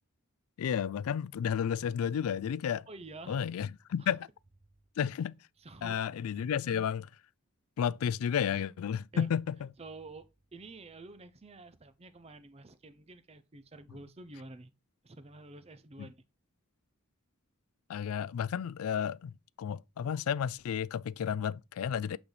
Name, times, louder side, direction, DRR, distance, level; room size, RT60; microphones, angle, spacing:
voice 1, 0.6-2.9 3.3-4.3 5.0-5.4 5.8-7.1 7.8-9.6 17.9-22.2, left 8 dB, 75° left, 0.3 m, -32 dB
voice 2, 2.9-3.4 4.0-4.1 5.6-6.0 9.1-9.3 9.8-14.7 15.0-16.2, right 2 dB, 30° right, 0.6 m, -49 dB
8.3 x 4.0 x 3.3 m
head